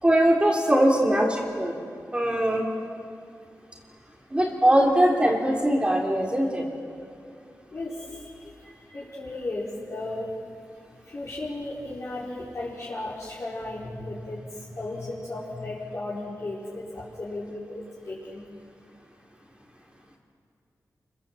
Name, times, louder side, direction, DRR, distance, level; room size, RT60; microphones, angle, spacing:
voice 1, 0.0-1.8 2.1-2.7 4.3-6.6, right 1 dB, 15° right, -1 dB, 3.4 m, -21 dB
voice 2, 7.7-10.3 11.1-18.4, left 2 dB, 45° left, -7 dB, 4.9 m, -35 dB
28.5 x 23.0 x 7.8 m, 2.3 s
wide cardioid pair, 115°, 6 cm